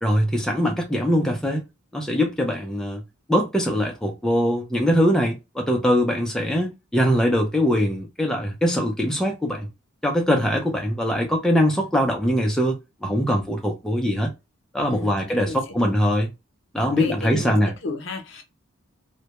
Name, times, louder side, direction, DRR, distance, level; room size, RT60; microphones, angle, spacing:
voice 1, 0.0-1.6 1.9-3.0 3.3-9.7 10.0-14.3 14.7-16.3 16.7-17.7, equal, 5° left, 0.3 m, -22 dB
voice 2, 14.9-15.6 16.8-17.5 17.8-18.4, left 2 dB, 60° left, 0.6 m, -33 dB
2.1 x 2.0 x 2.8 m
head